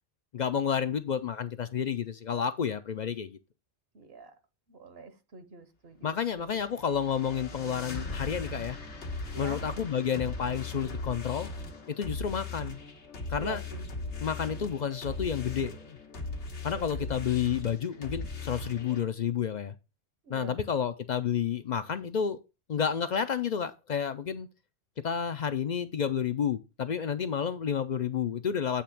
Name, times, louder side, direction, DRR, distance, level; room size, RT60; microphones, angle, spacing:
voice 1, 0.3-3.4 6.0-8.8 9.4-11.5 11.9-12.8 13.3-13.6 14.2-16.0 16.6-19.7 20.3-22.4 22.7-24.5 25.0-28.8, left 7 dB, 55° left, 0.5 m, -30 dB
voice 2, 3.9-4.3 4.7-6.4 9.3-9.6 13.4-13.8 17.0-17.1 20.2-20.6, right 4 dB, 65° right, 1.1 m, -44 dB
sound 1, 6.3-19.0, left 3 dB, 90° left, 1.6 m, -39 dB
8.4 x 3.3 x 5.8 m
omnidirectional pair, 1.1 m